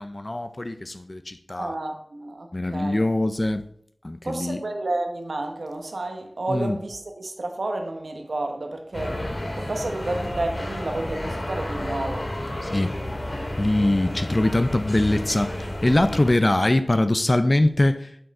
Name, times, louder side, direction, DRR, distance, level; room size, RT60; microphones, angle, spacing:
voice 1, 0.0-1.8 2.5-3.6 4.0-4.6 6.5-6.8 12.6-13.0 13.6-18.2, left 1 dB, 40° left, 0.5 m, -23 dB
voice 2, 1.6-3.0 4.2-12.3, right 2 dB, 85° right, 1.2 m, -31 dB
sound 1, 8.9-16.3, left 1 dB, 60° left, 2.5 m, -31 dB
6.9 x 6.4 x 4.8 m
wide cardioid pair, 60°, 0 cm